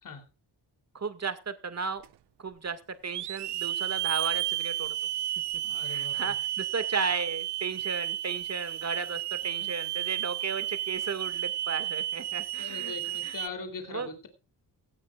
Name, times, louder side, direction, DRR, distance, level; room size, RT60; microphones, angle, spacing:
voice 1, 0.9-2.0 2.4-4.9 5.8-12.9 13.2-13.4 13.9-14.1, right 5 dB, 40° right, 11 dB, 2.0 m, -34 dB
Hiss / Alarm, 2.0-2.1 3.1-13.5, right 13 dB, 80° right, 0.6 m, -32 dB
voice 2, 5.6-6.4 12.6-14.3, left 4 dB, 55° left, 6 dB, 3.4 m, -41 dB
18.0 x 14.5 x 2.4 m, 0.31 s
cardioid pair, 95°, 40 cm